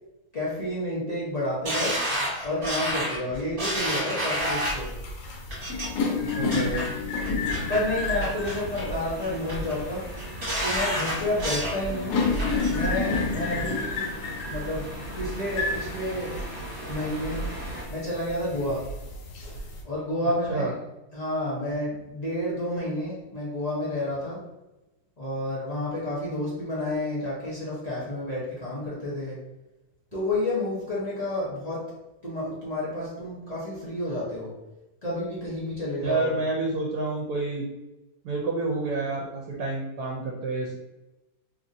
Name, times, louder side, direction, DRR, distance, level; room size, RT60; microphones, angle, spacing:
voice 1, 0.3-2.0 2.4-5.0 7.7-10.0 10.6-12.2 12.7-14.1 14.4-14.9 15.2-16.4 16.9-17.5 17.9-18.9 19.8-20.7 21.1-24.4 25.2-29.4 30.1-31.9 32.2-34.5 35.0-36.3, left 1 dB, 35° left, -7 dB, 0.7 m, -30 dB
sound 1, 1.7-4.9 5.5-5.9 6.3-6.8 7.2-7.8 8.2-8.9 9.2-9.7 10.2-11.8 12.1-12.7 13.1-13.2, equal, 50° right, 1.4 m, -30 dB
sound 2, 4.4-19.8, left 3 dB, 85° left, 1.2 m, -31 dB
voice 2, 6.4-7.0 13.5-13.7 20.5-20.7 36.0-37.7 38.2-40.8, right 3 dB, 75° right, -2 dB, 1.1 m, -29 dB
sound 3, 7.5-17.8, right 1 dB, 5° right, 1.2 m, -41 dB
3.0 x 2.5 x 2.6 m, 0.99 s
omnidirectional pair, 1.7 m